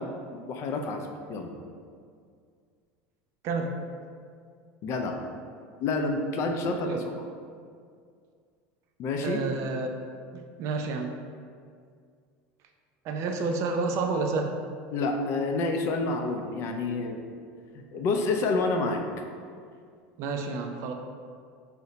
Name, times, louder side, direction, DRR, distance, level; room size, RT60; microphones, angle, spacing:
voice 1, 0.0-1.5 4.8-5.2 5.8-7.3 9.0-9.4 14.9-17.2 17.7-19.0, left 3 dB, 50° left, 3 dB, 0.4 m, -29 dB
voice 2, 3.4-3.8 6.9-7.0 9.2-9.9 10.3-11.2 13.0-14.6 20.2-20.9, right 3 dB, 55° right, 4 dB, 0.3 m, -29 dB
3.8 x 2.1 x 2.7 m, 2.2 s
supercardioid pair, 110°, 6 cm